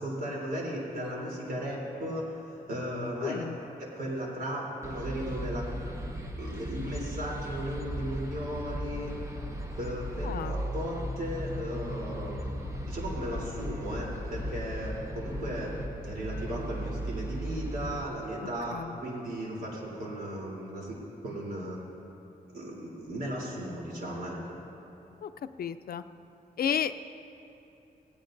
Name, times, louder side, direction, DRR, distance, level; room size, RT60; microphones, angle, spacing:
voice 1, 0.0-3.4 3.8-5.6 6.4-9.1 9.8-21.0 21.2-21.8 22.5-24.5, equal, 80° right, -4 dB, 3.4 m, -36 dB
voice 2, 3.2-3.6 10.2-10.5 18.7-19.0 25.2-25.3 25.6-26.0 26.6-26.9, left 8 dB, 75° left, 11 dB, 0.4 m, -32 dB
sound 1, 4.8-18.1, equal, 20° right, 0.9 m, -37 dB
18.0 x 17.0 x 2.6 m, 2.9 s
wide cardioid pair, 150°, 16 cm